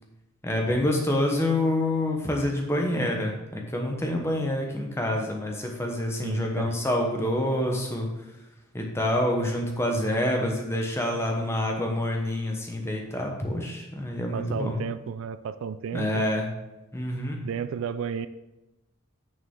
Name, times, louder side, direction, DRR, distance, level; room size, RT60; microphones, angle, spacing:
voice 1, 0.4-8.1 8.7-14.8 15.9-16.5 16.9-17.4, left 1 dB, 10° left, 1 dB, 0.9 m, -27 dB
voice 2, 6.2-6.7 14.3-16.2 17.4-18.3, right 6 dB, 70° right, 14 dB, 0.3 m, -33 dB
6.6 x 6.3 x 3.7 m, 0.99 s
head